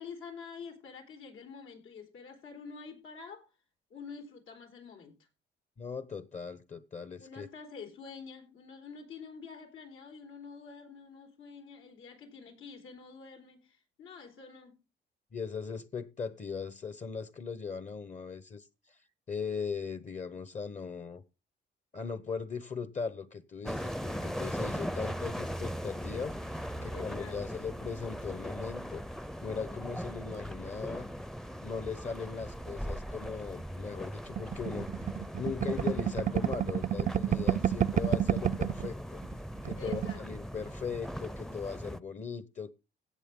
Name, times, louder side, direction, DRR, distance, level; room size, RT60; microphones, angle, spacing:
voice 1, 0.0-3.5 3.9-5.2 7.2-14.8 26.9-27.7 39.8-40.2, left 5 dB, 85° left, 4.0 m, -47 dB
voice 2, 5.8-7.5 15.3-19.0 19.3-21.2 21.9-29.0 29.4-31.1 31.6-34.9 35.4-39.2 39.6-42.7, left 5 dB, 35° left, 1.0 m, -39 dB
sound 1, 23.6-42.0, equal, ahead, 0.6 m, -40 dB
sound 2, 34.4-38.9 39.2-39.3 39.6-40.2, right 9 dB, 40° right, 0.5 m, -29 dB
16.5 x 6.8 x 3.7 m
cardioid pair, 90°, 20 cm